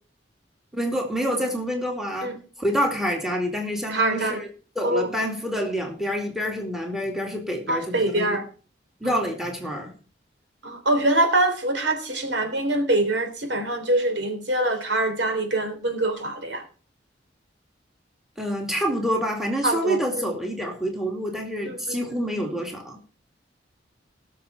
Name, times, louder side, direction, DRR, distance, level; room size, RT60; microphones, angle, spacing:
voice 1, 0.7-4.5 4.8-8.4 9.0-9.9 18.4-23.0, equal, ahead, 3 dB, 2.4 m, -27 dB
voice 2, 3.9-4.4 4.8-5.1 7.7-8.4 9.0-9.2 10.6-16.6 19.6-20.3 21.6-22.2, right 2 dB, 75° right, 5 dB, 3.3 m, -24 dB
19.0 x 6.8 x 4.2 m, 0.38 s
head